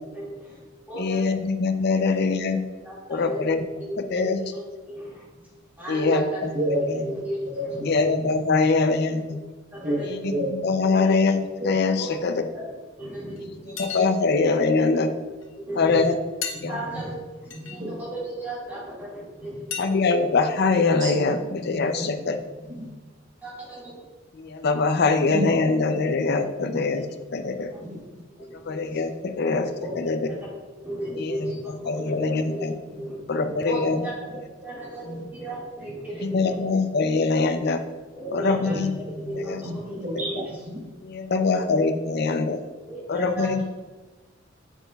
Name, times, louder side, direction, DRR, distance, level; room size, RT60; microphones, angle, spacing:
voice 1, 0.1-0.6 0.9-1.3 1.9-2.2 2.8-3.4 3.9-5.3 5.8-6.6 6.9-7.8 9.7-10.3 11.0-11.1 12.0-12.2 13.0-13.9 15.6-16.0 16.7-19.8 21.0-21.1 21.9-22.2 23.4-24.0 27.0-27.1 27.7-27.8 28.4-28.7 29.8-30.5 30.8-32.7 33.0-34.1 34.6-36.7 38.1-38.9 39.3-40.4 41.4-41.6 42.9-43.5, right 1 dB, 10° right, -7 dB, 2.0 m, -35 dB
voice 2, 0.9-2.6 3.1-3.6 4.0-4.4 5.9-6.5 6.9-7.0 7.9-9.4 10.0-12.4 13.8-15.1 15.8-16.2 16.6-16.8 19.8-22.4 24.3-27.1 27.3-27.7 28.5-29.7 29.9-30.3 31.1-32.8 33.3-34.0 36.2-37.8 38.3-38.9 39.3-39.6 40.1-40.2 41.0-42.6 43.1-43.6, left 4 dB, 55° left, 7 dB, 0.5 m, -23 dB
voice 3, 6.4-8.3 9.8-10.0 10.3-10.5 16.6-16.7 17.5-18.0 20.8-21.4 21.7-22.1 22.6-22.9 25.3-25.5 26.6-27.0 27.8-28.0 32.9-33.0 33.9-34.1 35.0-35.2 38.6-39.4 39.6-40.9, equal, 40° right, -1 dB, 1.1 m, -31 dB
sound 1, 13.4-13.5 13.8-14.5 15.4-15.5 16.0-16.1 16.4-16.6 17.5-17.8 19.7-19.9, left 7 dB, 80° left, 0.9 m, -33 dB
7.9 x 6.0 x 2.3 m, 1.3 s
head